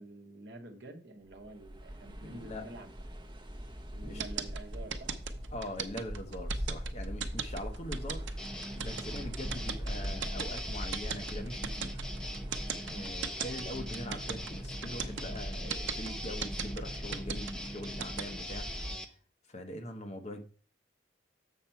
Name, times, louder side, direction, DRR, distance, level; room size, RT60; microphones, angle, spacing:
voice 1, 0.0-2.9 3.9-5.2 12.2-12.4 12.9-13.2, right 1 dB, 60° right, 1.0 m, -48 dB
sound 1, 1.3-19.0, equal, 25° right, 1.0 m, -41 dB
voice 2, 2.2-2.7 4.0-4.2 5.5-12.1 12.7-18.7 19.5-20.4, left 1 dB, 35° left, 0.9 m, -42 dB
sound 2, 4.2-18.2, right 7 dB, 80° right, 0.7 m, -37 dB
sound 3, 8.4-19.0, equal, 5° left, 0.6 m, -42 dB
7.4 x 5.8 x 4.4 m
head